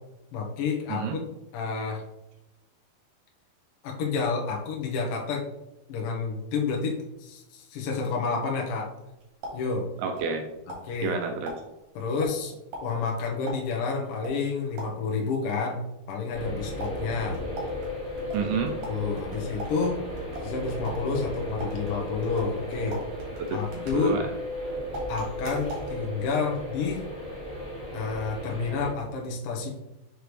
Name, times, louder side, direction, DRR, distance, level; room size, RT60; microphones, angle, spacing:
voice 1, 0.3-1.2 1.5-2.0 3.8-5.5 5.9-8.9 9.5-9.9 10.8-11.2 12.0-12.6 12.8-15.8 16.1-17.4 18.9-20.0 20.4-23.0 23.5-24.2 25.1-27.0 27.9-29.7, left 4 dB, 70° left, -1 dB, 2.2 m, -29 dB
sound 1, 9.0-10.4 10.7-15.2 16.8-24.6 24.9-25.9, right 1 dB, 55° right, 2.8 m, -42 dB
voice 2, 10.0-10.5 11.0-11.5 18.3-18.8 23.4-24.3, right 5 dB, 85° right, 4 dB, 2.2 m, -29 dB
sound 2, 16.3-28.9, left 1 dB, 25° left, 1.1 m, -35 dB
6.7 x 4.9 x 3.1 m, 0.93 s
omnidirectional pair, 4.7 m